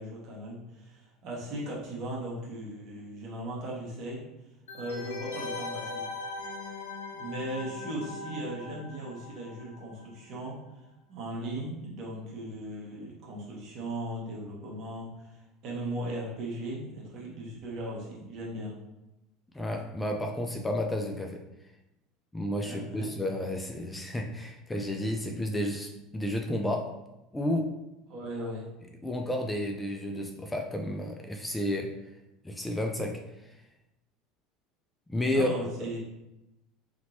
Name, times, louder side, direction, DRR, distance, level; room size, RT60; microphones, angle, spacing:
voice 1, 0.0-4.2 4.7-6.1 7.2-10.6 11.1-18.7 22.6-23.1 28.1-28.7 35.3-36.0, right 1 dB, 50° right, -4 dB, 1.1 m, -38 dB
sound 1, 4.7-10.2 10.4-10.5, left 3 dB, 85° left, 0.5 m, -40 dB
voice 2, 19.5-21.4 22.3-26.9 27.3-27.7 29.0-31.9 32.4-33.5 35.1-35.5 35.8-35.9, left 1 dB, 10° left, 2 dB, 0.4 m, -31 dB
2.9 x 2.8 x 2.7 m, 0.93 s
hypercardioid pair, 75°, 0 cm